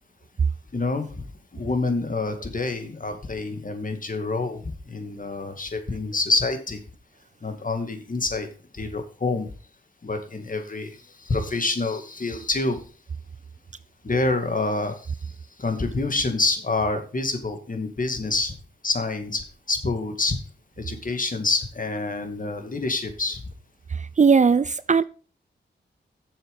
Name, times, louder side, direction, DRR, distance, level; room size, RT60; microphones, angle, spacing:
voice 1, 0.7-1.2 1.5-6.8 7.4-8.5 8.7-9.5 10.0-12.8 14.0-15.3 15.6-18.5 18.8-20.4 20.8-23.4, left 3 dB, 45° left, 2.0 m, -27 dB
voice 2, 23.9-25.0, right 5 dB, 40° right, 0.5 m, -19 dB
7.2 x 7.0 x 5.4 m
cardioid pair, 55°, 19 cm